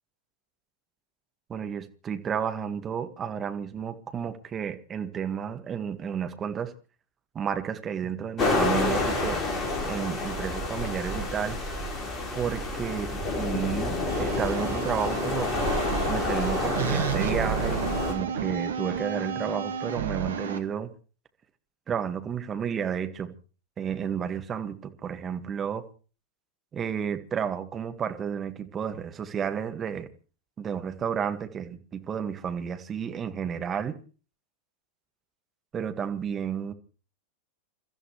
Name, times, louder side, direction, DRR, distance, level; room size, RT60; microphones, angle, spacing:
voice 1, 1.5-6.7 7.3-9.4 9.8-11.6 12.3-13.1 13.4-15.5 16.1-20.9 21.9-23.4 23.8-25.8 26.7-30.1 30.6-34.0 35.7-36.7, right 7 dB, 25° right, 1.8 m, -32 dB
sound 1, 8.4-18.1, left 2 dB, 25° left, 5.4 m, -29 dB
sound 2, 14.1-20.6, right 7 dB, 65° right, 1.8 m, -32 dB
29.0 x 14.0 x 3.3 m
figure-of-eight pair, 90°, 0 cm